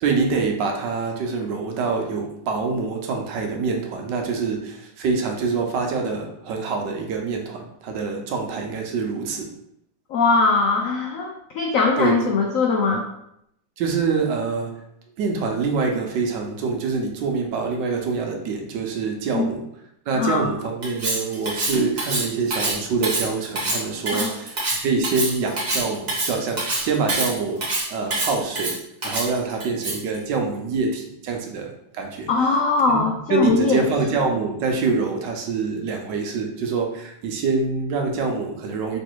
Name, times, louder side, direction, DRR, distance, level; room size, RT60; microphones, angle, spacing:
voice 1, 0.0-9.5 12.0-12.1 13.8-14.7 15.2-19.6 20.1-27.6 27.9-28.8 29.0-32.3 32.9-33.0 33.3-39.0, right 4 dB, 75° right, 2 dB, 1.3 m, -25 dB
voice 2, 10.1-13.0 19.3-19.5 20.1-20.5 24.1-24.3 32.3-33.8, left 4 dB, 90° left, 1 dB, 0.7 m, -21 dB
Cutlery silverware, 20.8-30.2, right 2 dB, 40° right, 0.6 m, -26 dB
3.3 x 3.2 x 4.4 m, 0.77 s
omnidirectional pair, 2.1 m